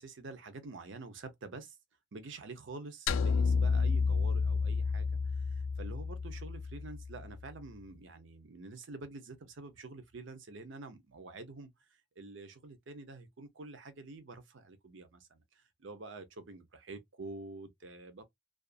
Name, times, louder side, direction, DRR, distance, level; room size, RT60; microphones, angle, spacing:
voice 1, 0.0-1.8 2.1-11.9 12.2-18.2, right 3 dB, 70° right, 0.6 m, -48 dB
sound 1, 3.1-7.4, left 5 dB, 75° left, 0.3 m, -31 dB
2.4 x 2.3 x 2.4 m
head